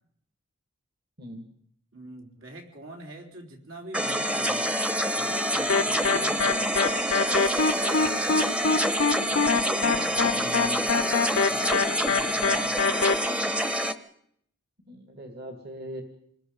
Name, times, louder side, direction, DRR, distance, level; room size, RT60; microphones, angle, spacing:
voice 1, 1.9-4.8 5.1-6.8 9.2-10.6 10.9-13.0, right 1 dB, 75° right, 2 dB, 3.8 m, -44 dB
sound 1, 3.9-13.9, equal, 5° right, 0.9 m, -27 dB
sound 2, 5.7-13.1, left 4 dB, 70° left, 0.8 m, -25 dB
voice 2, 10.2-10.9 12.2-12.3 14.8-16.0, equal, 50° right, 5 dB, 2.0 m, -40 dB
27.0 x 20.5 x 5.3 m, 0.70 s
head